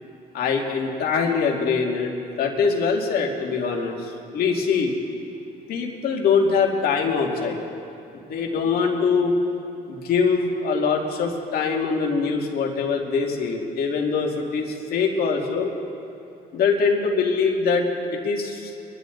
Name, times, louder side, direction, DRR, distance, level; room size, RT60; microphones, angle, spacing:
voice 1, 0.3-4.9 5.7-7.6 8.3-9.3 9.9-15.7 16.5-17.9 18.2-18.7, left 5 dB, 65° left, 0 dB, 2.4 m, -23 dB
24.5 x 11.5 x 4.0 m, 2.7 s
cardioid pair, 110°, 17 cm